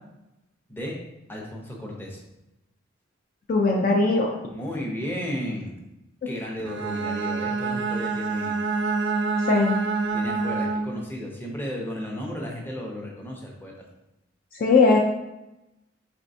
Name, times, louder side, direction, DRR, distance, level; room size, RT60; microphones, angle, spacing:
voice 1, 1.3-2.2 4.5-5.8 6.3-8.6 10.1-13.7, equal, 10° left, -1 dB, 0.7 m, -34 dB
voice 2, 3.5-4.4 9.5-9.8 14.6-15.0, left 3 dB, 45° left, 1 dB, 0.4 m, -19 dB
Bowed string instrument, 6.6-11.1, right 4 dB, 60° right, 0.4 m, -27 dB
4.4 x 3.3 x 2.6 m, 0.93 s
head